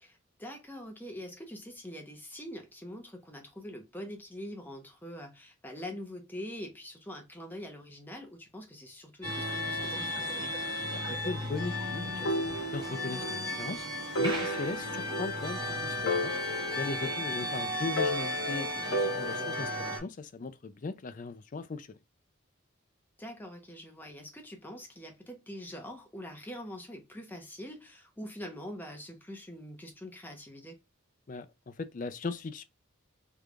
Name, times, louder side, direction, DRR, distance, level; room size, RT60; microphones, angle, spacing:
voice 1, 0.0-10.5 14.8-15.1 17.4-17.6 23.2-30.8, equal, 10° left, 0.8 m, -44 dB
sound 1, 9.2-20.0, left 1 dB, 20° right, 1.7 m, -35 dB
voice 2, 10.9-13.8 14.2-16.3 16.8-22.0 31.3-32.6, left 3 dB, 40° left, 0.4 m, -38 dB
sound 2, 12.3-13.4 13.7-13.8 14.2-15.7 16.1-17.5 18.0-19.8, left 1 dB, 65° left, 1.2 m, -33 dB
3.5 x 3.3 x 2.4 m
head